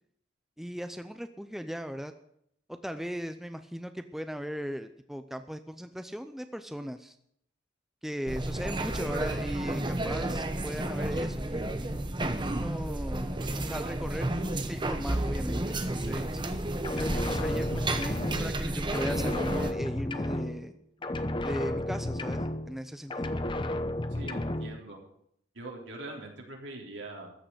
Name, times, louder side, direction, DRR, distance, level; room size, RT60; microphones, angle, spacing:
voice 1, 0.6-2.1 2.7-7.1 8.0-11.9 12.5-14.3 14.7-16.4 17.0-20.8 21.4-23.3, equal, ahead, 8 dB, 0.6 m, -38 dB
sound 1, 8.3-19.7, right 1 dB, 25° right, 1.0 m, -32 dB
sound 2, 16.8-18.7 18.9-20.8 21.0-22.8 23.1-24.8, left 1 dB, 25° left, 0.8 m, -32 dB
voice 2, 24.1-25.0 25.5-27.3, right 2 dB, 75° right, 0 dB, 3.7 m, -42 dB
14.0 x 6.6 x 9.5 m, 0.71 s
head